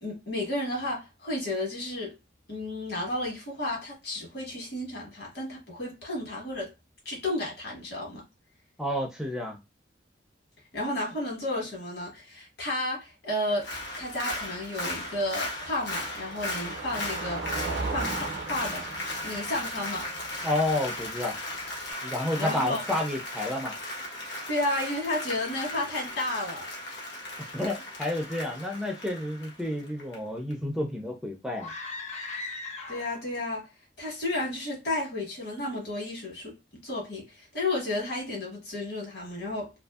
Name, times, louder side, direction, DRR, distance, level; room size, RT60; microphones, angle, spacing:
voice 1, 0.0-2.2 2.5-6.7 7.0-8.2 10.7-13.7 14.0-17.6 17.9-18.9 19.2-20.1 22.4-22.8 24.5-26.7 32.9-33.7 34.0-39.7, left 1 dB, 60° left, 1.3 m, -32 dB
voice 2, 8.8-9.6 20.4-21.4 22.0-23.8 27.5-31.7, left 1 dB, 5° right, 0.4 m, -30 dB
Applause, 13.5-30.2 30.5-30.6, left 1 dB, 85° left, 0.9 m, -37 dB
Car passing by, 13.6-21.9, right 3 dB, 70° right, 0.5 m, -39 dB
sound 1, 31.5-33.3, left 3 dB, 40° left, 0.6 m, -38 dB
2.6 x 2.5 x 2.3 m
head